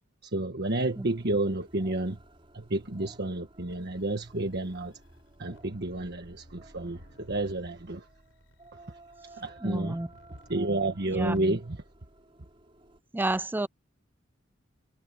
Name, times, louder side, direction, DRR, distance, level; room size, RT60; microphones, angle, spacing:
voice 1, 0.2-2.2 2.5-4.9 5.4-8.1 9.4-10.0 10.5-11.8, right 2 dB, 60° right, 1.5 m, -30 dB
sound 1, 0.6-13.0, right 2 dB, 30° right, 6.1 m, -55 dB
sound 2, 3.7-11.4, left 1 dB, 80° left, 7.8 m, -58 dB
voice 2, 9.6-10.1 11.1-11.6 13.1-13.7, right 2 dB, 10° right, 0.4 m, -30 dB
head